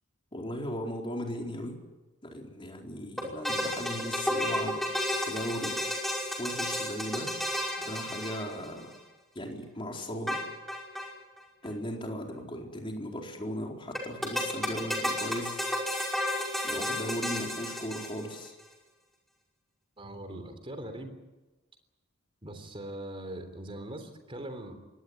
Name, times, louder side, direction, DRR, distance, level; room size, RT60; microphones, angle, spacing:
voice 1, 0.3-1.8 2.2-5.8 6.4-7.3 7.8-8.9 9.3-10.4 11.6-15.6 16.6-18.6, equal, 25° left, 1 dB, 4.3 m, -37 dB
sound 1, 3.2-9.0 10.3-11.1 11.4-11.5 11.6-11.7 14.0-18.5, left 1 dB, ahead, 5.2 m, -32 dB
voice 2, 20.0-21.1 22.4-24.8, right 1 dB, 25° right, 7 dB, 3.4 m, -41 dB
24.0 x 19.0 x 9.8 m, 1.2 s
head